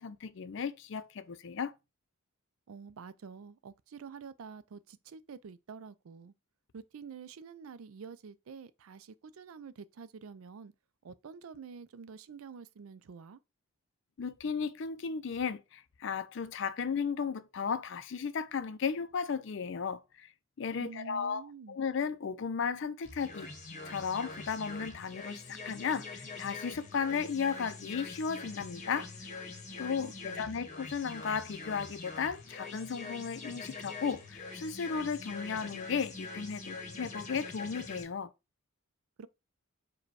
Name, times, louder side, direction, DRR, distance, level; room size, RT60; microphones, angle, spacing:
voice 1, 0.0-1.7 14.2-20.3 20.6-23.5 23.9-29.1 29.8-38.3, left 6 dB, 60° left, 0.4 m, -35 dB
voice 2, 2.7-6.3 6.7-10.7 11.0-13.4 20.8-21.8 29.9-30.7 39.2-39.3, right 5 dB, 75° right, 0.4 m, -48 dB
sound 1, 23.0-38.0, left 3 dB, 35° left, 0.9 m, -44 dB
4.9 x 2.2 x 4.6 m
head